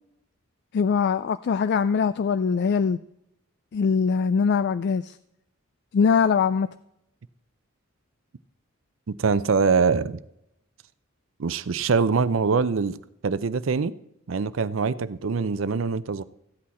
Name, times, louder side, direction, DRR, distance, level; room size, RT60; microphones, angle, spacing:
voice 1, 0.7-3.0 3.7-5.1 5.9-6.7, left 6 dB, 55° left, 0.3 m, -22 dB
voice 2, 9.1-10.2 11.4-13.0 13.2-13.9 14.3-16.2, right 5 dB, 70° right, 0.5 m, -23 dB
14.5 x 8.6 x 4.2 m
head